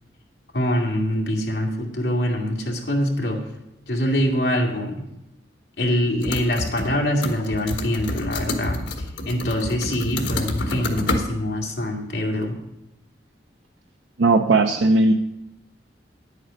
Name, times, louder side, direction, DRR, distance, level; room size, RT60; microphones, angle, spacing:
voice 1, 0.5-3.4 3.9-5.0 5.8-8.8 9.3-12.5, equal, 65° left, 0 dB, 2.2 m, -24 dB
sound 1, 6.2-7.0 7.2-11.2, left 2 dB, 80° left, 1.4 m, -28 dB
voice 2, 14.2-15.1, right 2 dB, 80° right, 5 dB, 0.6 m, -17 dB
10.0 x 8.4 x 5.1 m, 0.91 s
head